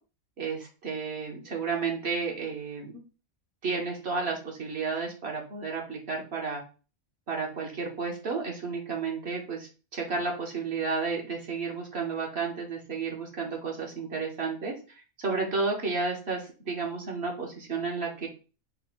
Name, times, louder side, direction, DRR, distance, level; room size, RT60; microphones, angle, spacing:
voice 1, 0.4-2.9 3.6-6.6 7.3-14.7 15.2-18.3, right 4 dB, 50° right, 0 dB, 1.2 m, -32 dB
4.2 x 2.3 x 4.3 m, 0.34 s
omnidirectional pair, 1.5 m